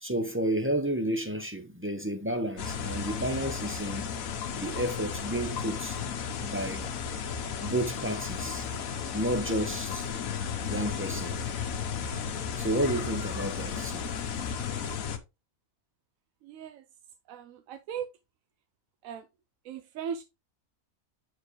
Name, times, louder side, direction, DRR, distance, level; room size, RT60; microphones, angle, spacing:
voice 1, 0.0-4.1 4.5-6.0 6.4-6.9 7.6-8.7 9.1-10.1 10.6-11.4 12.6-14.1, right 1 dB, 15° right, 0.4 m, -31 dB
sound 1, 2.6-15.2, left 6 dB, 70° left, 1.3 m, -34 dB
voice 2, 16.4-16.9 17.3-18.1 19.0-19.3 19.6-20.2, right 8 dB, 70° right, 0.9 m, -38 dB
8.2 x 4.8 x 3.1 m
omnidirectional pair, 1.6 m